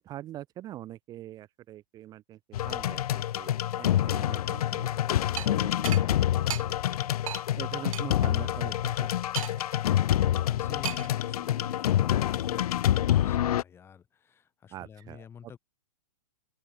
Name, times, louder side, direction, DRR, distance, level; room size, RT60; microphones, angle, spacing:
voice 1, 0.0-2.4 2.6-6.6 7.6-9.1 14.7-15.3, right 13 dB, 20° right, 4.8 m, -43 dB
sound 1, 2.5-13.6, left 12 dB, 85° left, 0.4 m, -27 dB
sound 2, 5.4-5.5 5.9-6.0 6.5-6.6 7.3-7.4 7.9-8.0 9.4-9.7 10.8-11.2, right 11 dB, 65° right, 1.3 m, -34 dB
voice 2, 10.2-15.6, left 7 dB, 15° left, 8.0 m, -49 dB
open air
hypercardioid pair, 160°, 19 cm